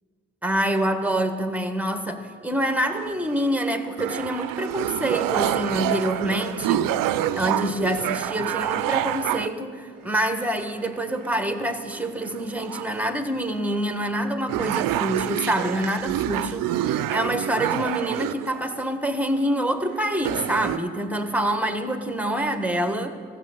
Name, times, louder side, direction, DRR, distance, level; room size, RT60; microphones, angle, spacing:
voice 1, 0.4-6.9 7.3-23.2, right 1 dB, 5° right, 7 dB, 1.3 m, -26 dB
sound 1, 2.7-3.5 4.0-9.5 10.3-10.9 11.3-11.4 11.9-13.1 13.7-13.8 14.2-14.3 14.5-18.8 19.7-19.8 20.1-20.8, right 12 dB, 75° right, 0.5 m, -27 dB
14.5 x 6.5 x 7.0 m, 2.1 s
supercardioid pair, 45°, 33 cm